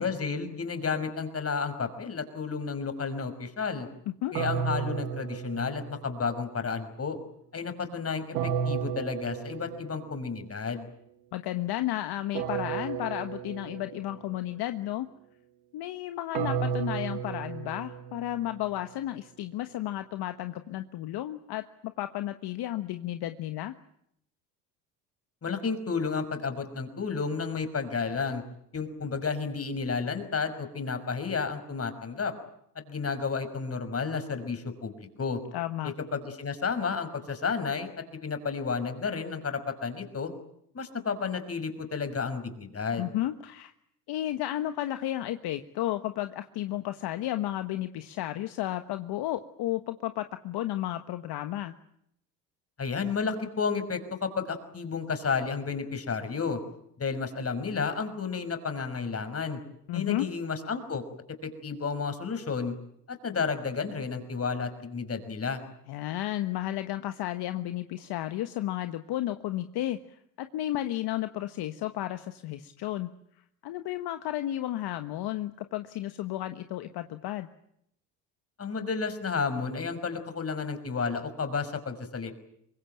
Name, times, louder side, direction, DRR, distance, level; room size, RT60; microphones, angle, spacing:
voice 1, 0.0-3.9 4.3-7.2 7.5-10.9 25.4-28.4 28.7-32.3 32.9-35.4 36.1-40.3 40.7-43.1 52.8-56.6 57.0-59.6 59.9-61.0 61.4-62.7 63.1-65.6 78.6-82.3, left 5 dB, 35° left, 8 dB, 5.7 m, -32 dB
sound 1, 4.3-6.4 8.3-10.2 12.3-14.2 16.3-18.5, right 7 dB, 85° right, 2.0 m, -33 dB
voice 2, 11.3-15.1 15.7-23.7 35.5-35.9 43.0-43.7 44.1-51.7 59.9-60.3 65.9-70.0 70.4-73.1 73.6-77.5, left 14 dB, 60° left, 9 dB, 1.4 m, -33 dB
24.5 x 21.0 x 8.9 m, 0.73 s
supercardioid pair, 75°, 43 cm